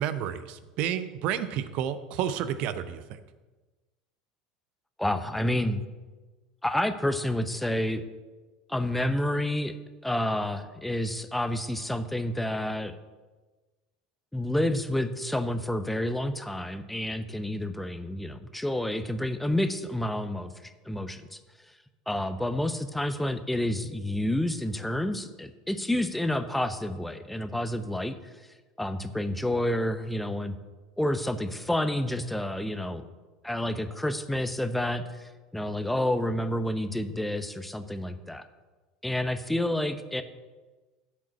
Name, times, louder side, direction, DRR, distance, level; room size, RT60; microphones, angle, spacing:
voice 1, 0.0-3.0, right 9 dB, 55° right, 12 dB, 0.7 m, -30 dB
voice 2, 5.0-5.8 6.6-8.0 8.7-9.7 10.0-13.0 14.3-20.5 20.9-21.2 22.1-28.1 28.8-30.6 31.0-33.0 33.4-38.5 39.0-40.2, left 1 dB, 5° left, 10 dB, 0.8 m, -29 dB
7.6 x 7.3 x 8.4 m, 1.3 s
figure-of-eight pair, 70°, 2 cm